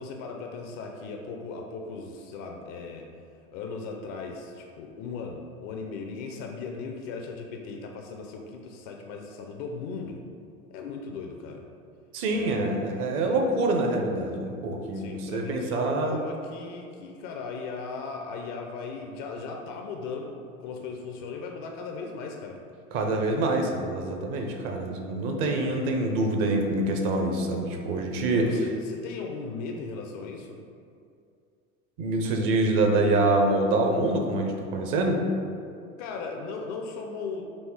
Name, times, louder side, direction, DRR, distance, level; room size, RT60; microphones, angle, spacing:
voice 1, 0.0-3.1 3.5-10.2 10.7-11.7 12.3-12.8 14.9-22.6 27.4-27.6 28.3-30.6 36.0-37.4, left 4 dB, 40° left, 2 dB, 0.4 m, -37 dB
voice 2, 12.1-16.2 22.9-28.5 32.0-35.2, right 2 dB, 45° right, 2 dB, 0.6 m, -25 dB
4.2 x 2.7 x 3.5 m, 2.4 s
figure-of-eight pair, 80°, 41 cm